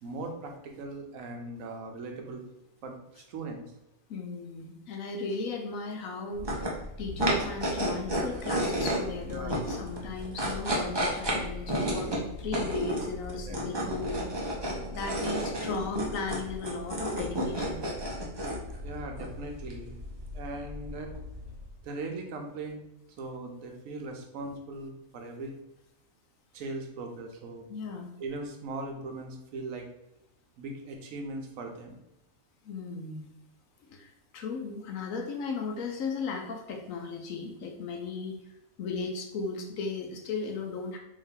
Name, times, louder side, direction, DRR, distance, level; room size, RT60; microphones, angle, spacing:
voice 1, 0.0-2.4 2.8-3.6 9.3-9.6 13.4-13.7 18.6-20.0 20.3-21.1 21.8-22.8 23.2-25.5 26.5-27.7 28.2-29.8 30.6-32.0, right 2 dB, 85° right, 3 dB, 1.1 m, -39 dB
voice 2, 4.1-14.2 14.9-17.8 24.4-24.5 27.7-28.1 32.6-33.3 33.9-38.4 38.8-41.0, left 4 dB, 85° left, 3 dB, 1.1 m, -36 dB
sound 1, 6.3-21.7, equal, 30° right, 0.5 m, -32 dB
3.5 x 2.6 x 3.6 m, 0.88 s
omnidirectional pair, 1.4 m